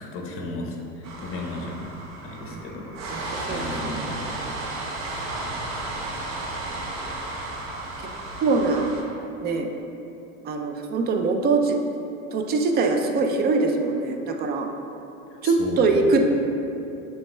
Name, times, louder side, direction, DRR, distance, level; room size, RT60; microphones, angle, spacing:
voice 1, 0.0-2.9 3.1-4.3 15.4-16.2, left 2 dB, 35° left, -1 dB, 0.8 m, -34 dB
sound 1, 1.0-9.0, right 2 dB, 45° right, 0.8 m, -33 dB
voice 2, 3.1-3.9 8.4-8.9 9.4-9.7 10.4-11.8 12.3-14.7 15.4-16.2, right 3 dB, 25° right, 4 dB, 0.3 m, -23 dB
6.9 x 3.2 x 2.2 m, 2.8 s
hypercardioid pair, 95°, 40 cm